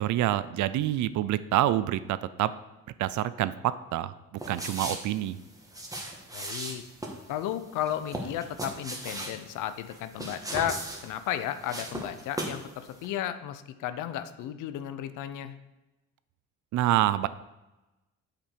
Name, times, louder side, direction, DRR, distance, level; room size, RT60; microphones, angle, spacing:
voice 1, 0.0-2.5 3.0-4.1 4.5-5.4 16.7-17.3, right 13 dB, 75° right, 15 dB, 0.5 m, -27 dB
sound 1, 4.4-12.7 12.9-13.1, right 1 dB, 10° right, 1.4 m, -38 dB
voice 2, 6.3-6.8 7.3-15.5, left 11 dB, 90° left, 11 dB, 0.6 m, -34 dB
7.2 x 5.1 x 4.6 m, 1.0 s
cardioid pair, 90°, 30 cm